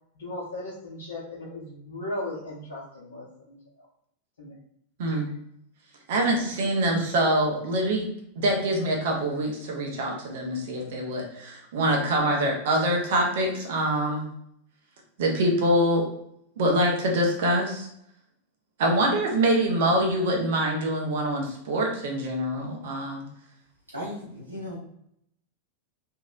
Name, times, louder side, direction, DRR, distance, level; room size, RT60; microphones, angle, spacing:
voice 1, 0.1-3.9 4.4-4.5, left 1 dB, 65° left, -8 dB, 0.8 m, -37 dB
voice 2, 6.1-8.1 8.4-14.3 15.2-16.1 16.6-17.9 18.8-23.2, right 1 dB, 55° right, 0 dB, 0.7 m, -25 dB
voice 3, 23.9-24.8, equal, 85° right, -7 dB, 0.8 m, -36 dB
2.9 x 2.7 x 2.3 m, 0.73 s
figure-of-eight pair, 90°, 0 cm